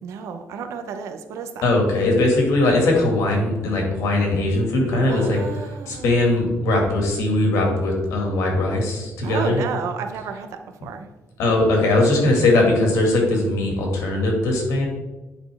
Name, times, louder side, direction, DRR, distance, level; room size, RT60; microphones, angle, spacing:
voice 1, 0.0-1.7 5.1-6.2 9.2-10.5 10.8-11.1, right 6 dB, 75° right, 8 dB, 0.7 m, -32 dB
voice 2, 1.6-9.6 11.4-14.9, left 2 dB, 80° left, 1 dB, 1.9 m, -20 dB
8.9 x 4.1 x 3.5 m, 1.1 s
cardioid pair, 155°, 5 cm